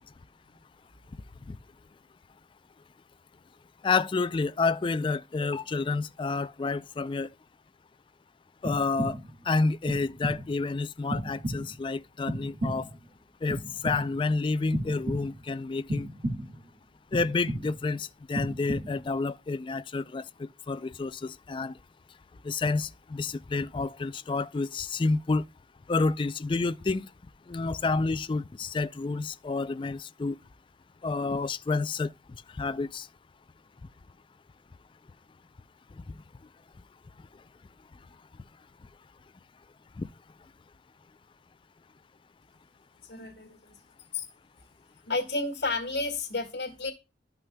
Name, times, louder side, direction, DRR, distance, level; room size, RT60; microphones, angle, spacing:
voice 1, 3.8-7.3 8.6-9.2 9.5-12.9 13.4-16.1 17.1-21.7 22.4-25.5 25.9-27.1 27.5-30.4 31.0-32.1 32.6-33.1 40.0-40.1, left 3 dB, 25° left, 0.3 m, -29 dB
sound 1, 8.6-9.4 9.9-10.6 11.1-11.9 12.3-13.1 13.5-14.3 14.7-15.5 15.9-16.7 17.1-17.9 18.3-19.1, equal, 45° right, 1.9 m, -34 dB
voice 2, 43.1-43.7 44.1-44.3 45.1-46.9, left 3 dB, 90° left, 1.8 m, -31 dB
12.0 x 5.8 x 2.2 m
head